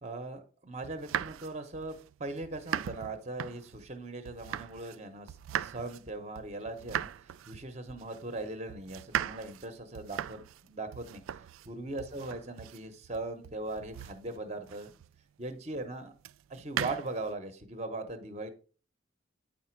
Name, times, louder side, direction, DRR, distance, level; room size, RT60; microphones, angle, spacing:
voice 1, 0.0-15.0 15.4-16.1 16.5-18.5, right 2 dB, 35° right, 7 dB, 0.9 m, -40 dB
sound 1, 0.8-5.0 5.3-15.2 16.2-17.3, right 10 dB, 90° right, 0.3 m, -39 dB
9.1 x 5.0 x 4.5 m, 0.38 s
head